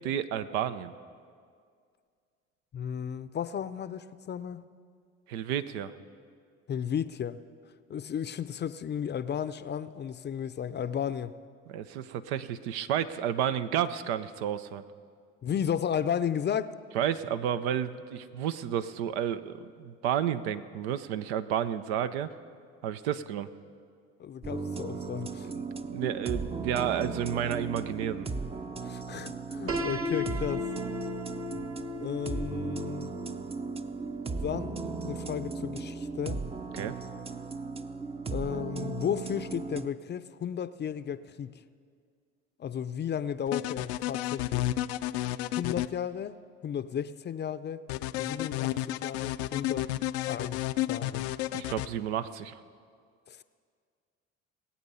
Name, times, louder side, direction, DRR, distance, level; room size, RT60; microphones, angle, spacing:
voice 1, 0.0-0.9 5.3-5.9 11.7-14.8 16.9-22.3 22.8-23.5 25.4-28.3 36.7-37.0 51.5-52.6, right 9 dB, 80° right, 12 dB, 0.7 m, -31 dB
voice 2, 2.7-4.6 6.7-7.4 7.9-11.3 15.4-16.7 24.2-25.5 28.8-30.7 32.0-33.1 34.4-36.4 38.3-41.6 42.6-44.7 45.6-47.8 48.2-49.9 50.3-50.6 50.9-51.2 53.3-53.4, left 8 dB, 35° left, 14 dB, 0.5 m, -34 dB
sound 1, 24.4-39.9, right 4 dB, 20° right, 0.6 m, -36 dB
Piano, 29.7-35.5, left 2 dB, 45° right, 1.7 m, -37 dB
sound 2, 43.5-45.9 47.9-51.9, left 15 dB, 80° left, 0.5 m, -31 dB
20.0 x 8.7 x 5.5 m, 2.1 s
hypercardioid pair, 65°, 32 cm